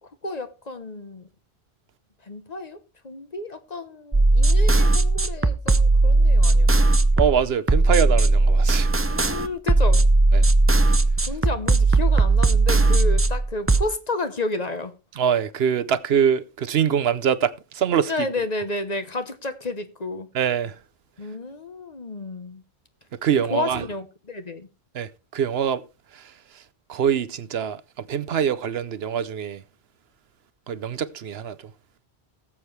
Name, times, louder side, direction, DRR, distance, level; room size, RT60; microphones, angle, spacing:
voice 1, 0.0-1.3 2.2-6.9 9.1-10.1 11.2-14.9 18.1-20.3 21.2-22.6 23.5-24.7, left 2 dB, 40° left, 1.1 m, -31 dB
sound 1, 4.1-13.8, right 2 dB, 15° right, 0.5 m, -18 dB
voice 2, 7.2-8.9 10.3-10.5 15.2-18.1 20.3-20.8 23.2-23.8 24.9-25.8 26.1-26.6 26.9-29.6 30.7-31.6, right 8 dB, 70° right, 1.0 m, -24 dB
19.0 x 7.4 x 3.3 m
omnidirectional pair, 1.1 m